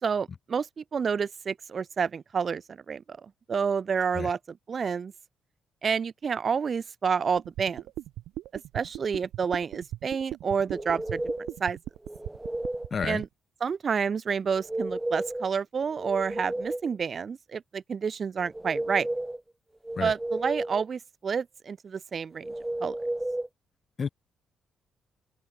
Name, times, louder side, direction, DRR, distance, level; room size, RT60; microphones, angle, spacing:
voice 1, 0.0-3.0 3.5-5.1 5.8-7.8 8.7-11.2 11.6-11.8 13.0-13.3 13.6-19.1 20.0-22.5 22.8-22.9, right 6 dB, 45° right, 1.5 m, -29 dB
sound 1, 7.4-13.3, right 14 dB, 90° right, 1.4 m, -38 dB
sound 2, 10.7-11.6 12.0-12.9 14.5-15.5 15.8-17.0 18.4-19.4 19.8-20.9 22.4-23.5, right 1 dB, 10° right, 2.1 m, -33 dB
voice 2, 12.9-13.2 20.0-20.1 24.0-24.1, left 6 dB, 40° left, 3.1 m, -30 dB
cardioid pair, 90°, 0 cm